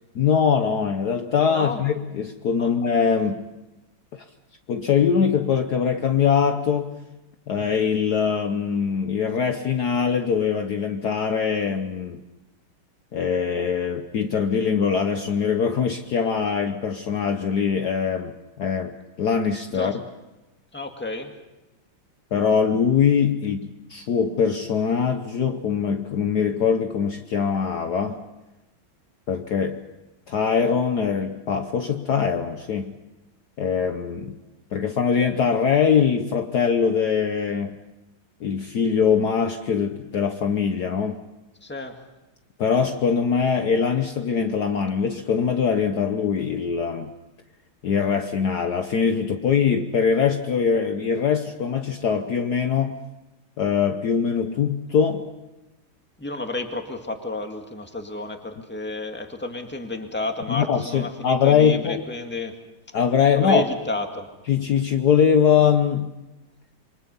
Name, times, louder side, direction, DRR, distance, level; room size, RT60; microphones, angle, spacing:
voice 1, 0.1-3.4 4.1-4.2 4.7-7.0 7.5-12.2 13.1-18.3 18.6-19.9 22.3-28.2 29.3-29.8 30.3-32.9 33.6-34.4 34.7-37.8 38.4-41.2 42.6-47.1 47.8-53.0 53.6-55.3 60.5-62.0 62.9-63.7 64.5-66.1, left 6 dB, 60° left, 6 dB, 1.3 m, -22 dB
voice 2, 1.5-1.8 2.6-2.7 19.7-20.0 20.7-21.3 41.6-42.0 56.2-62.5 63.3-64.3, left 2 dB, 5° left, 4 dB, 1.8 m, -31 dB
27.5 x 24.0 x 5.5 m, 1.0 s
omnidirectional pair, 2.3 m